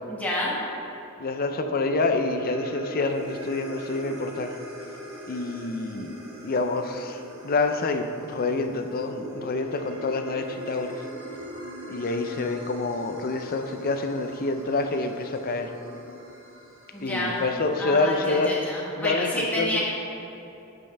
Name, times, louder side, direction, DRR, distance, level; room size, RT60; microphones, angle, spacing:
voice 1, 0.1-0.6 16.9-17.4 17.8-19.8, left 1 dB, 5° left, -6 dB, 1.5 m, -29 dB
voice 2, 1.2-4.6 5.3-7.2 7.4-11.0 11.9-15.7 17.0-18.5 19.0-19.8, left 3 dB, 45° left, 6 dB, 0.5 m, -27 dB
sound 1, 1.2-17.6, right 1 dB, 65° right, 1.5 m, -41 dB
12.0 x 5.3 x 3.4 m, 2.9 s
head